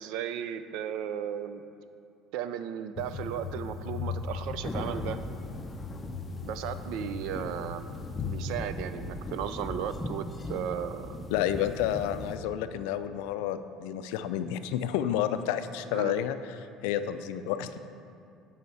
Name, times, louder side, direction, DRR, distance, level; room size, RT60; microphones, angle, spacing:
voice 1, 0.0-1.6 2.3-5.2 6.4-7.9 8.2-11.2 15.9-16.2, right 9 dB, 75° right, 11 dB, 0.4 m, -35 dB
sound 1, 3.0-8.5, left 5 dB, 45° left, 0.8 m, -38 dB
sound 2, 4.6-12.4, left 1 dB, 15° left, 0.6 m, -39 dB
voice 2, 11.3-16.6 16.8-17.7, left 10 dB, 85° left, 11 dB, 0.3 m, -30 dB
9.1 x 5.5 x 4.2 m, 2.5 s
supercardioid pair, 105°, 0 cm